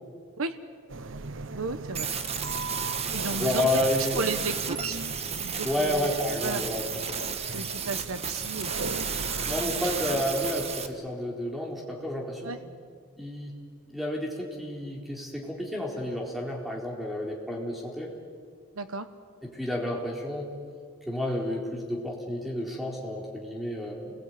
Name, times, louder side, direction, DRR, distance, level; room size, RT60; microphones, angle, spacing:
sound 1, 0.9-10.4, right 3 dB, 60° right, 0.9 m, -39 dB
voice 1, 1.5-2.1 3.1-3.8 4.1-5.0 5.4-6.6 7.5-9.1 9.3-9.7 12.4-12.6 18.7-19.1, right 3 dB, 80° right, 10 dB, 1.1 m, -34 dB
sound 2, 1.9-10.9, right 6 dB, 30° right, 1.5 m, -33 dB
voice 2, 3.3-4.2 5.6-7.2 9.4-12.5 13.2-13.5 13.9-18.1 19.5-20.5 21.1-24.1, left 1 dB, ahead, -1 dB, 4.2 m, -30 dB
29.5 x 21.5 x 9.5 m, 2.1 s
head